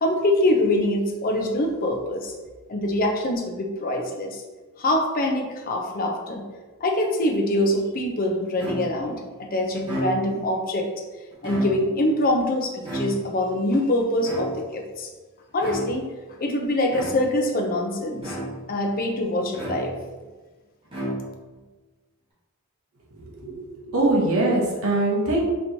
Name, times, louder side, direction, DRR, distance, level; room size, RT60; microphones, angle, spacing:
voice 1, 0.0-2.3 2.7-4.4 4.8-6.4 6.8-10.9 11.4-15.1 15.5-16.1 16.4-18.4 18.7-19.9, left 1 dB, 40° left, 2 dB, 0.5 m, -24 dB
sound 1, 8.6-9.1 9.7-10.5 11.3-12.1 12.8-13.5 14.2-14.9 15.6-16.1 16.9-17.5 18.2-18.8 19.5-20.2 20.9-21.6, right 1 dB, 25° right, 1.1 m, -33 dB
voice 2, 23.2-25.4, right 2 dB, 70° right, -3 dB, 0.9 m, -23 dB
4.4 x 2.9 x 2.7 m, 1.3 s
head